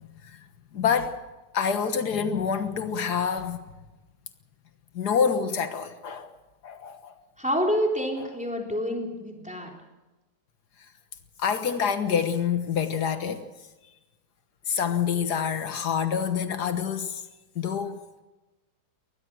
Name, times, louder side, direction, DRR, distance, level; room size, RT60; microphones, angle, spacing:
voice 1, 0.7-1.2 1.5-3.6 5.0-6.3 6.6-7.1 11.4-13.4 14.7-17.2 17.6-18.0, left 7 dB, 80° left, 9 dB, 1.9 m, -26 dB
voice 2, 7.4-9.7, equal, 5° right, 1 dB, 3.7 m, -27 dB
22.5 x 19.5 x 6.2 m, 1.1 s
omnidirectional pair, 1.7 m